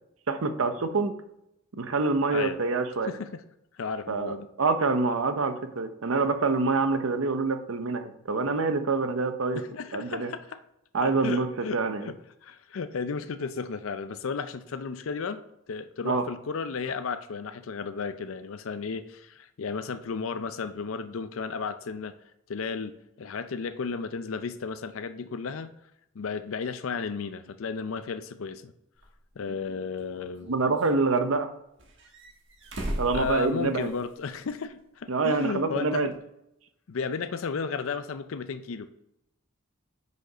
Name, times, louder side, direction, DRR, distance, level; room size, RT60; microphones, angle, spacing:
voice 1, 0.3-1.1 1.8-3.1 4.1-9.6 9.9-10.3 10.9-11.5 11.7-12.1 16.0-16.2 30.5-31.5 33.0-33.9 35.1-36.1, right 3 dB, 80° right, 9 dB, 0.7 m, -26 dB
voice 2, 3.0-3.4 3.8-4.5 9.5-10.6 11.0-12.2 12.4-15.4 15.7-22.1 22.5-25.7 26.1-28.7 29.4-30.5 33.1-36.1 36.9-38.9, left 5 dB, 80° left, 11 dB, 0.5 m, -34 dB
sound 1, 29.0-29.1 30.0-30.9 31.8-34.1 34.4-34.5 36.1-36.2, equal, 60° right, 1.4 m, -37 dB
6.4 x 5.3 x 5.0 m, 0.82 s
head